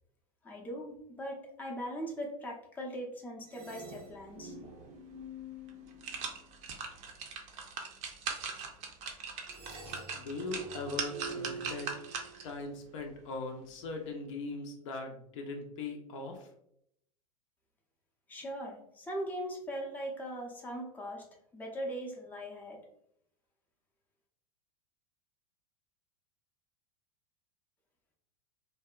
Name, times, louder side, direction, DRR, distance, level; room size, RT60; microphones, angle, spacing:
voice 1, 0.4-4.5 18.3-21.2 21.5-22.8, equal, 10° left, -1 dB, 0.5 m, -40 dB
sound 1, 3.5-6.7 9.5-12.7, right 2 dB, 80° right, 0.6 m, -47 dB
sound 2, 5.1-5.2 5.7-12.6 13.0-13.1, right 5 dB, 40° right, 0.5 m, -40 dB
voice 2, 10.1-12.0 12.4-16.5, left 3 dB, 55° left, 3 dB, 0.5 m, -40 dB
2.7 x 2.1 x 2.3 m, 0.74 s
figure-of-eight pair, 90°, 19 cm